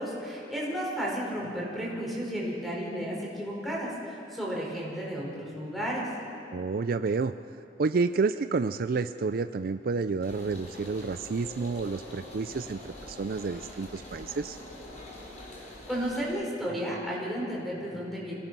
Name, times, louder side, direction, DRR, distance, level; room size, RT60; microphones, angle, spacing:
voice 1, 0.0-6.1 15.9-18.3, equal, ahead, -4 dB, 4.8 m, -33 dB
voice 2, 6.5-7.3 7.8-14.6, right 4 dB, 55° right, 12 dB, 0.4 m, -30 dB
sound 1, 10.2-16.3, left 1 dB, 40° left, 4.6 m, -45 dB
26.5 x 17.5 x 6.1 m, 2.7 s
head